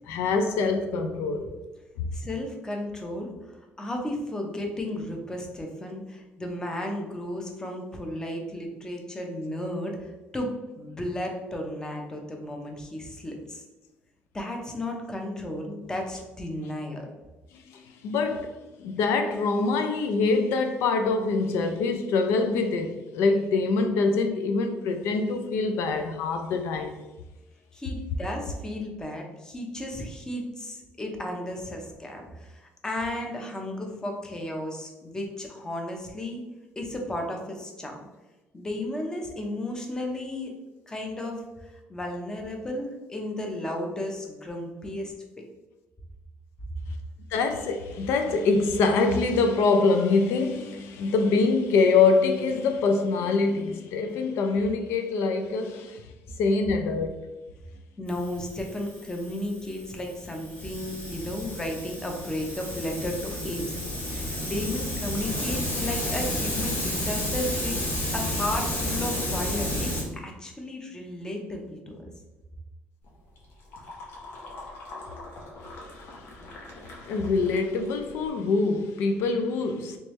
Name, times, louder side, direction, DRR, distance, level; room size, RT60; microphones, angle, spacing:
voice 1, 0.1-1.5 2.0-2.1 18.0-18.5 18.8-27.0 47.3-56.0 56.4-57.2 77.0-80.0, left 4 dB, 85° left, 0.4 m, -24 dB
voice 2, 2.1-13.6 14.3-17.1 27.7-36.4 36.8-38.0 38.5-40.5 40.9-45.1 58.0-63.8 64.1-67.8 68.1-72.1, left 1 dB, 15° left, 0.7 m, -34 dB
Hiss, 58.1-70.0, left 1 dB, 40° left, 1.4 m, -31 dB
sound 1, 73.0-78.3, left 2 dB, 65° left, 1.0 m, -44 dB
3.3 x 3.1 x 3.1 m
cardioid pair, 125°, 4 cm